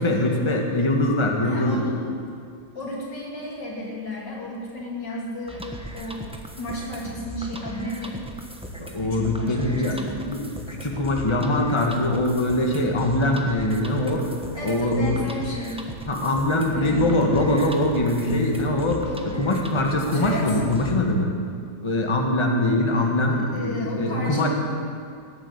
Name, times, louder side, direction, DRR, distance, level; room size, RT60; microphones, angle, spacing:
voice 1, 0.0-1.9 8.8-14.3 14.6-15.2 16.1-21.3 21.8-24.5, left 1 dB, 15° left, 1 dB, 1.6 m, -23 dB
voice 2, 1.4-2.0 2.8-5.6 5.9-6.3 6.6-8.2 9.0-10.2 14.5-15.8 16.7-17.2 19.0-19.5 20.0-20.6 22.9-23.1 23.5-24.5, left 1 dB, 90° left, -3 dB, 3.9 m, -33 dB
sound 1, 5.5-21.0, right 1 dB, 5° right, 1.0 m, -38 dB
18.0 x 8.8 x 8.2 m, 2.4 s
omnidirectional pair, 1.8 m